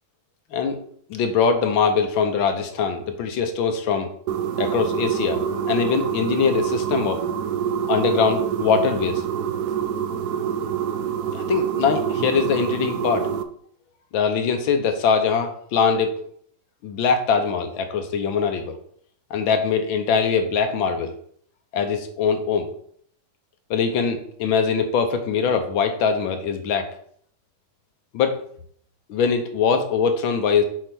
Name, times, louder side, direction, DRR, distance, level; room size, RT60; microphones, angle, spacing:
voice 1, 1.1-4.1 4.6-7.2 7.9-9.2 11.3-13.3 14.1-16.2 16.8-18.8 19.3-21.1 21.7-22.7 23.7-26.9 28.1-28.4 29.1-30.6, left 6 dB, 75° left, 7 dB, 1.6 m, -22 dB
sound 1, 4.3-13.4, right 8 dB, 75° right, 0.8 m, -26 dB
6.6 x 3.8 x 6.0 m, 0.62 s
omnidirectional pair, 2.2 m